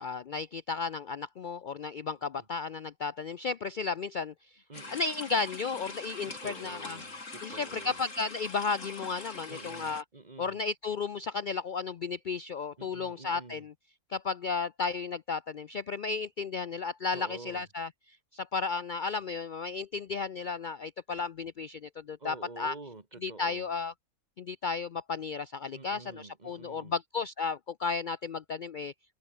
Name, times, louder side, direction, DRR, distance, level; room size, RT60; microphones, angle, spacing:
voice 1, 0.0-4.3 4.9-7.0 7.4-10.0 10.4-13.7 14.1-17.9 18.3-22.7 23.2-23.9 24.4-28.9, left 4 dB, 80° left, 0.4 m, -34 dB
sound 1, 4.7-10.0, left 3 dB, 60° left, 4.0 m, -43 dB
voice 2, 6.3-8.0 9.5-10.6 12.8-13.7 17.1-17.7 22.2-23.7 25.7-26.9, right 3 dB, 30° right, 1.8 m, -48 dB
omnidirectional pair, 1.5 m